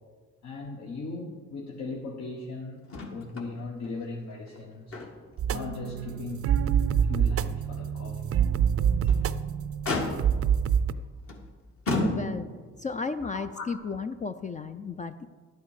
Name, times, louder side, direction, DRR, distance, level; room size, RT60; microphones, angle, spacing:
voice 1, 0.4-5.0 5.5-6.5 7.0-8.3 13.2-13.7, left 3 dB, 60° left, -1 dB, 1.4 m, -38 dB
Motor vehicle (road), 2.9-3.5 3.8-3.9 4.5-5.4 5.8-6.0 6.5-6.6 8.8-9.3 9.8-10.5 11.3-11.4 11.9-12.7 13.7-13.8, left 2 dB, 45° left, 1.8 m, -32 dB
sound 1, 5.4-10.9, right 8 dB, 50° right, 0.5 m, -26 dB
voice 2, 11.9-12.5 12.8-15.3, left 5 dB, 25° left, 9 dB, 0.4 m, -33 dB
12.0 x 8.6 x 4.9 m, 1.6 s
cardioid pair, 90°, 30 cm